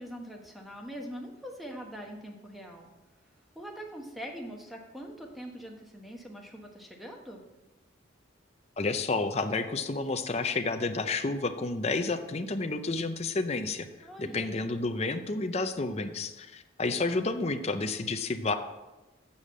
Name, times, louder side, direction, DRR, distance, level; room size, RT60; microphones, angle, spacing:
voice 1, 0.0-2.9 3.5-7.4 14.0-14.5, equal, ahead, 1 dB, 1.1 m, -43 dB
voice 2, 8.8-18.5, left 3 dB, 35° left, 7 dB, 0.5 m, -30 dB
7.0 x 6.5 x 7.4 m, 1.1 s
head